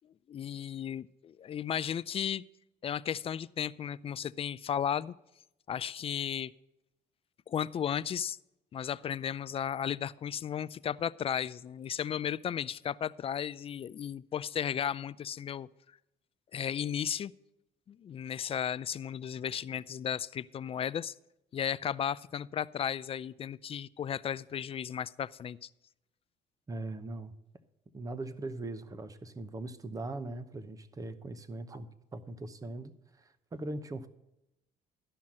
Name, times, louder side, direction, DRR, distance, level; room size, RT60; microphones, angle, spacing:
voice 1, 0.3-2.4 2.8-5.1 5.7-6.5 7.5-8.4 8.7-15.7 16.5-17.3 17.9-21.1 21.5-25.7, left 9 dB, 35° left, 17 dB, 0.4 m, -34 dB
voice 2, 26.7-27.3 27.9-32.9 33.2-34.1, right 2 dB, 20° right, 12 dB, 0.8 m, -40 dB
12.0 x 5.7 x 7.5 m, 0.89 s
cardioid pair, 110°, 17 cm